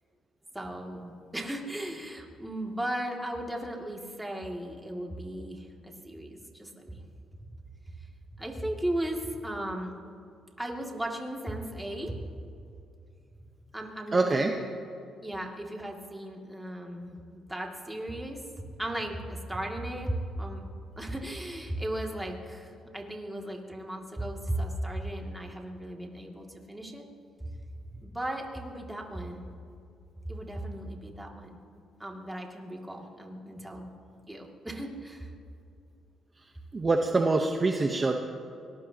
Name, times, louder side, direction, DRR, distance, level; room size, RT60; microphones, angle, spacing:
voice 1, 0.5-7.0 8.4-9.9 10.6-12.2 13.7-14.8 15.2-20.7 21.0-27.1 27.9-29.4 30.3-31.6 32.0-33.9 34.3-35.3, right 1 dB, 10° right, 0 dB, 2.5 m, -36 dB
voice 2, 14.1-14.5 36.7-38.1, right 3 dB, 30° right, 3 dB, 1.1 m, -25 dB
24.0 x 19.5 x 3.0 m, 2.5 s
cardioid pair, 90°, 0 cm